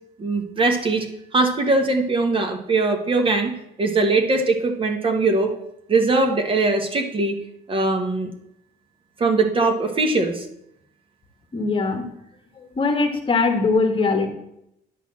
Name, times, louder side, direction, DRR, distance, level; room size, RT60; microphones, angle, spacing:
voice 1, 0.2-1.1 1.3-5.5 5.9-7.4 7.7-8.3 9.2-10.4, right 3 dB, 30° right, 4 dB, 1.2 m, -21 dB
voice 2, 11.5-12.0 12.6-14.3, left 4 dB, 30° left, 6 dB, 1.4 m, -21 dB
10.5 x 4.1 x 7.2 m, 0.78 s
cardioid pair, 110°, 17 cm